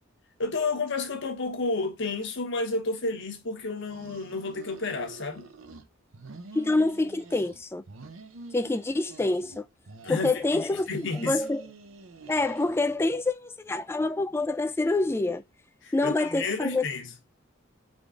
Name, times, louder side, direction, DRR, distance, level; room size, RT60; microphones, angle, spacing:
voice 1, 0.4-5.5 10.0-11.4 15.8-17.1, left 3 dB, 60° left, 1.0 m, -31 dB
sound 1, 3.8-5.8 6.1-7.6 7.9-9.6 9.9-13.1, right 3 dB, 70° right, 0.7 m, -47 dB
voice 2, 6.5-7.8 8.5-9.6 10.1-11.7 12.3-15.4 15.9-16.9, left 2 dB, 10° left, 0.3 m, -26 dB
3.7 x 3.6 x 3.6 m
head